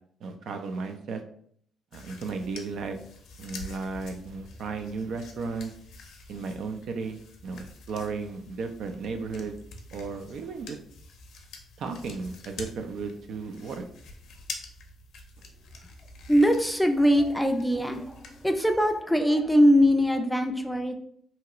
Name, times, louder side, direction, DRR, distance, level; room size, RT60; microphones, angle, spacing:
voice 1, 0.2-1.2 1.9-3.0 3.4-5.7 6.3-9.5 9.9-10.8 11.8-13.9, right 4 dB, 70° right, 6 dB, 0.4 m, -34 dB
sound 1, 1.9-19.0, left 3 dB, 75° left, 0.6 m, -46 dB
voice 2, 16.3-20.9, equal, 5° left, 5 dB, 0.4 m, -22 dB
2.9 x 2.9 x 2.4 m, 0.63 s
cardioid pair, 90°, 0 cm